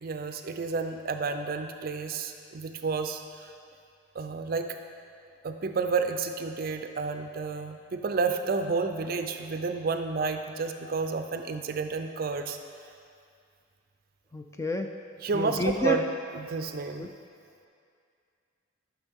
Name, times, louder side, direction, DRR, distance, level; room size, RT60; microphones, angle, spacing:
voice 1, 0.0-3.2 4.1-4.8 5.4-12.6 15.2-16.0 16.3-17.1, right 4 dB, 45° right, 6 dB, 0.5 m, -30 dB
voice 2, 14.3-14.9 15.3-16.0 17.0-17.1, equal, 15° left, 4 dB, 0.3 m, -29 dB
11.0 x 6.1 x 3.6 m, 2.4 s
head